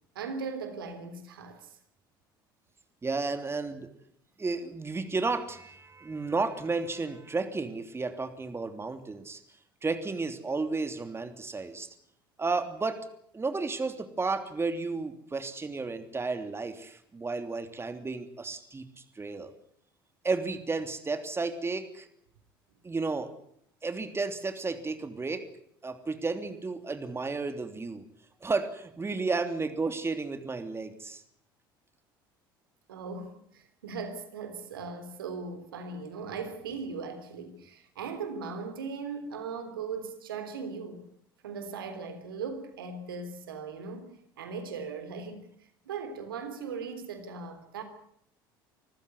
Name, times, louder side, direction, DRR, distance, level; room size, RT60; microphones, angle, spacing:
voice 1, 0.2-1.8 32.9-41.0 41.4-45.4 45.9-47.8, right 5 dB, 85° right, 3.4 m, -38 dB
voice 2, 3.0-3.9 4.4-9.4 9.8-11.9 12.4-13.1 13.3-19.5 20.2-22.1 22.8-23.3 23.8-25.5 25.8-28.0 28.4-31.2, right 3 dB, 20° right, 3.1 m, -32 dB
26.0 x 15.0 x 9.7 m
hypercardioid pair, 65°, 12 cm